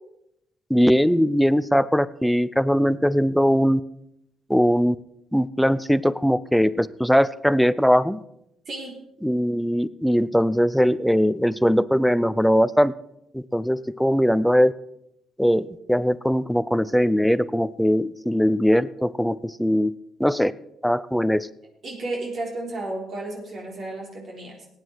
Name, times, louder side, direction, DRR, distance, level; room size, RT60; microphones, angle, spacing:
voice 1, 0.7-3.8 4.5-5.0 5.3-8.2 9.2-12.9 13.3-14.7 15.4-19.9 20.2-20.5 20.8-21.5, equal, ahead, 17 dB, 0.5 m, -20 dB
voice 2, 8.7-9.0 21.8-24.7, right 2 dB, 55° right, -1 dB, 3.7 m, -33 dB
17.0 x 9.4 x 4.6 m, 0.79 s
cardioid pair, 90°, 0 cm